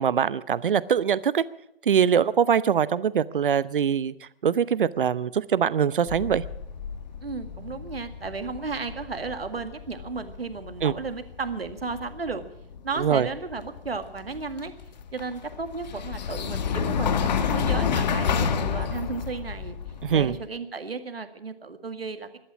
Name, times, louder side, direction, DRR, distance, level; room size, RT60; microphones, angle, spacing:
voice 1, 0.0-1.4 1.8-4.1 4.4-6.4 10.8-10.9 13.0-13.3 20.0-20.4, right 8 dB, 60° right, 18 dB, 0.9 m, -23 dB
sound 1, 6.1-20.5, left 7 dB, 45° left, 1.4 m, -30 dB
voice 2, 7.2-12.4 12.8-14.7 15.1-22.3, right 4 dB, 80° right, 9 dB, 2.0 m, -34 dB
19.5 x 12.0 x 6.1 m, 0.82 s
figure-of-eight pair, 135°, 30 cm